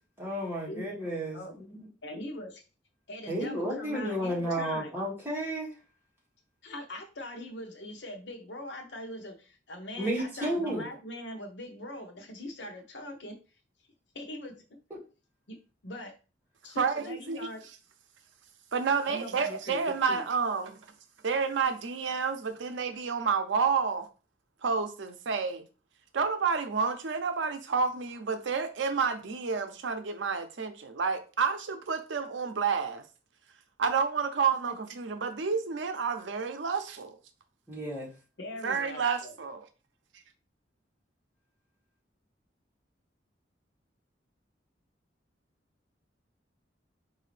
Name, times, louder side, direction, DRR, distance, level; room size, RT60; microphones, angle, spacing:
voice 1, 0.2-1.9 3.3-5.7 10.0-10.9 37.7-38.1, right 1 dB, 10° right, 1.7 m, -32 dB
voice 2, 2.0-2.6 3.1-4.9 6.6-13.4 14.1-14.5 15.5-16.2 16.6-17.7 19.0-20.2 34.6-34.7 38.4-39.3, left 1 dB, 70° left, 0.8 m, -41 dB
voice 3, 16.8-17.5 18.7-20.8 21.2-24.1 24.6-25.6 26.1-33.0 33.8-37.2 38.6-39.6, right 5 dB, 85° right, 0.6 m, -30 dB
4.9 x 2.7 x 3.2 m
head